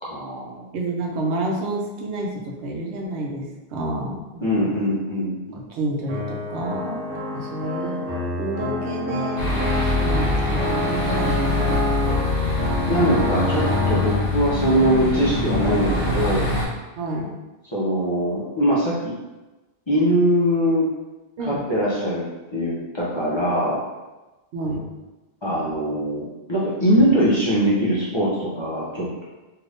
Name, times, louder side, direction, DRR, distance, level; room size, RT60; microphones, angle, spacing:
voice 1, 0.0-0.6 4.4-5.6 12.6-16.5 17.7-19.1 19.9-20.9 21.4-22.2 22.5-23.8 25.4-29.2, equal, 30° left, -8 dB, 0.7 m, -22 dB
voice 2, 0.7-4.7 5.5-7.0 7.3-8.1 8.4-11.8 17.0-17.3 21.4-21.6 24.5-24.8, right 2 dB, 80° right, -1 dB, 0.9 m, -29 dB
sound 1, 6.1-14.1, left 1 dB, 50° right, 1.3 m, -27 dB
sound 2, 9.4-16.7, left 2 dB, 70° left, 1.1 m, -24 dB
2.7 x 2.5 x 3.4 m, 1.1 s
omnidirectional pair, 1.1 m